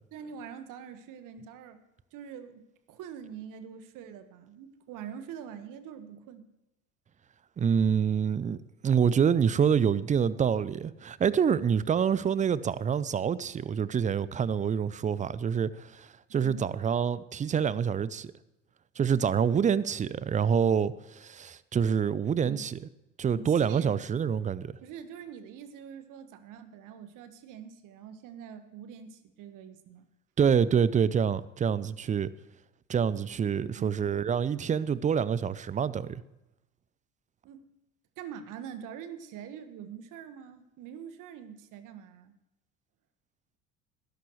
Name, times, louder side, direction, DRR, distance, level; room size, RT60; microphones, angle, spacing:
voice 1, 0.1-1.8 2.1-2.6 2.9-6.5 16.4-16.7 22.4-22.7 23.3-24.3 24.8-30.0 33.6-34.0 37.4-37.7 38.2-42.3, right 8 dB, 50° right, 1.6 m, -44 dB
voice 2, 7.6-18.3 19.0-22.8 23.2-24.7 30.4-32.3 32.9-36.2, right 7 dB, 20° right, 0.5 m, -26 dB
19.5 x 11.5 x 3.2 m
figure-of-eight pair, 70°, 41 cm